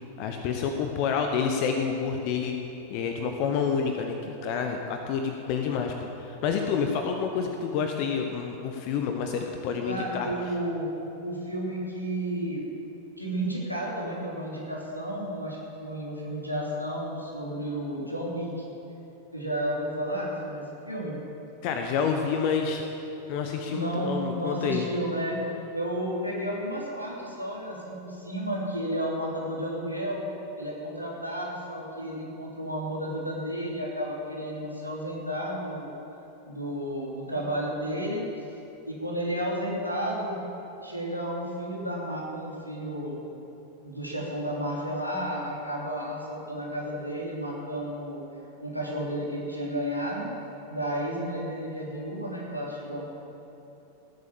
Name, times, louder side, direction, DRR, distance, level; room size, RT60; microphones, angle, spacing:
voice 1, 0.2-2.6 2.9-10.3 21.6-22.8 23.3-24.9, left 6 dB, 45° left, 4 dB, 1.1 m, -28 dB
voice 2, 9.8-10.9 11.2-12.7 13.2-18.7 19.3-21.2 23.7-25.4 25.7-30.3 30.6-35.9 36.4-38.2 38.8-40.4 40.8-43.2 43.8-48.2 48.6-50.3 50.7-53.1, equal, 90° left, -3 dB, 3.2 m, -32 dB
18.5 x 8.5 x 7.3 m, 3.0 s
figure-of-eight pair, 90°, 0 cm